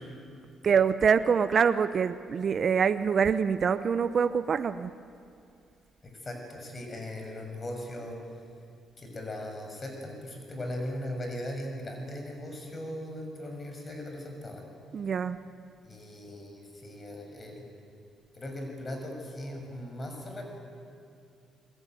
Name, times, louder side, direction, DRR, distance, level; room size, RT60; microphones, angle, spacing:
voice 1, 0.6-4.9 14.9-15.4, right 6 dB, 50° right, 12 dB, 0.7 m, -25 dB
voice 2, 6.0-8.2 9.0-14.7 15.8-17.7 18.3-20.5, left 1 dB, 30° left, 2 dB, 6.7 m, -39 dB
29.5 x 21.0 x 9.3 m, 2.5 s
cardioid pair, 90°, 0 cm